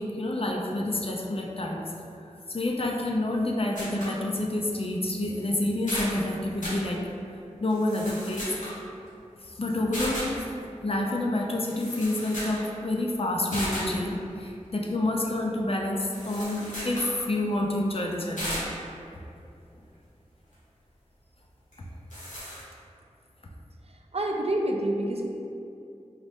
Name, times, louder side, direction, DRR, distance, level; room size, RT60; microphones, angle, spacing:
voice 1, 0.0-1.8 2.5-7.0 7.6-8.5 9.4-10.5 10.8-18.5, left 1 dB, 50° left, 0 dB, 0.5 m, -28 dB
sound 1, 3.7-4.2 4.7-4.8 5.4-5.5 5.7-6.2 6.6-6.8 7.7-8.8 9.9-10.4 11.4-11.5 11.7-12.7 12.9-13.0 13.5-13.9 16.1-17.1 18.4-18.7 21.7-21.8 22.1-22.6, equal, 75° left, 1.4 m, -35 dB
voice 2, 24.1-25.3, right 1 dB, 55° right, 1 dB, 0.4 m, -27 dB
3.9 x 2.6 x 3.4 m, 2.6 s
wide cardioid pair, 50°, 13 cm